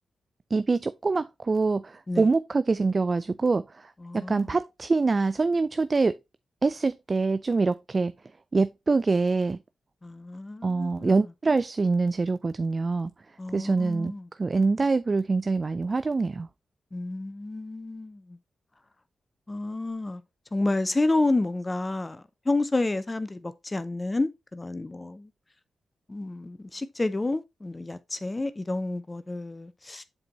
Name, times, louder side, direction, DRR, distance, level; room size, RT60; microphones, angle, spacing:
voice 1, 0.5-6.1 6.6-8.1 8.5-9.6 10.6-13.1 13.5-14.1 14.4-16.5, right 3 dB, 40° right, 0.4 m, -25 dB
voice 2, 4.0-4.5 10.0-11.2 13.4-14.3 16.9-18.4 19.5-20.2 20.5-25.3 26.1-30.0, left 2 dB, 30° left, 0.6 m, -30 dB
7.7 x 4.5 x 3.0 m
supercardioid pair, 40°, 0 cm